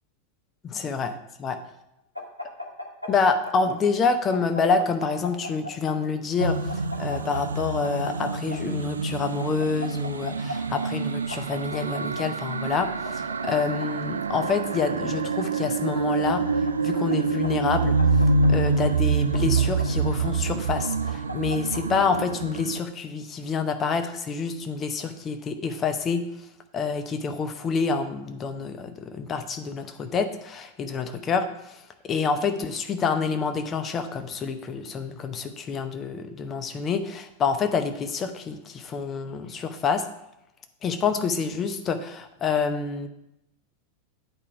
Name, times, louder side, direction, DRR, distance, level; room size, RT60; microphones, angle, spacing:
voice 1, 0.6-1.6 3.1-18.0 18.5-26.2 26.7-40.1 40.8-43.1, left 5 dB, 25° left, 8 dB, 0.8 m, -27 dB
sound 1, 2.1-3.8 4.1-5.9 6.4-8.6 9.4-10.5 10.8-10.9 11.3-12.2 12.8-13.9 14.5-15.4 16.2-17.1 17.4-18.7 19.3-20.3 20.8-21.8, left 1 dB, 85° left, 1.1 m, -37 dB
sound 2, 6.4-22.8, right 4 dB, 70° right, 0.3 m, -26 dB
8.9 x 4.8 x 5.7 m, 0.84 s
figure-of-eight pair, 90°, 0 cm